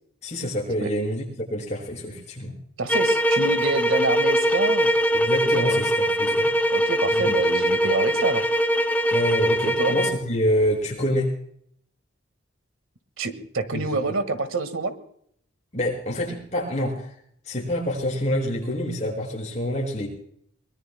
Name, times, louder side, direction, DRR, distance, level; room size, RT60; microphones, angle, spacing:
voice 1, 0.2-1.2 1.5-2.6 5.1-6.5 7.2-7.3 9.1-11.3 13.7-14.0 15.7-17.1 17.5-20.1, equal, 35° left, -1 dB, 5.8 m, -26 dB
voice 2, 2.8-4.9 5.5-5.8 6.7-8.4 9.6-9.9 13.2-15.0, right 3 dB, 80° right, 11 dB, 1.7 m, -27 dB
sound 1, 2.9-10.3, equal, 10° left, 0.6 m, -22 dB
24.0 x 21.5 x 2.2 m, 0.67 s
head